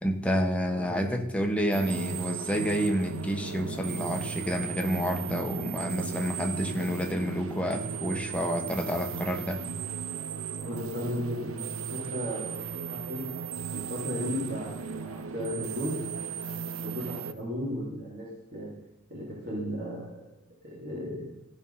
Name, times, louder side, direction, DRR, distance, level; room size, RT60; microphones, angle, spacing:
voice 1, 0.0-9.6, equal, 5° left, 3 dB, 1.2 m, -29 dB
voice 2, 0.7-1.1 10.5-13.2 13.7-16.0 16.8-18.7 19.1-20.2 20.6-21.3, equal, 50° right, -6 dB, 3.4 m, -35 dB
sound 1, 1.7-17.3, right 6 dB, 75° right, 0.6 m, -36 dB
15.0 x 5.5 x 5.6 m, 0.87 s
head